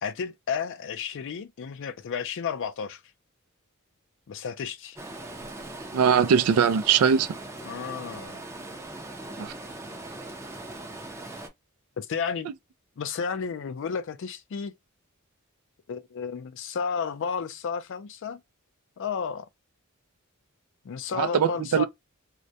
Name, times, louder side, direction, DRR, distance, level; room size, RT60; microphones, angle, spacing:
voice 1, 0.0-3.0 4.3-5.0 7.6-8.4 12.0-12.5 13.0-14.7 15.9-18.4 19.0-19.5 20.8-21.8, left 6 dB, 60° left, 0.4 m, -32 dB
Stream, 5.0-11.5, right 2 dB, 15° right, 0.5 m, -40 dB
voice 2, 5.9-7.3 9.4-9.5 21.1-21.8, right 7 dB, 90° right, 0.4 m, -21 dB
2.3 x 2.1 x 2.6 m
head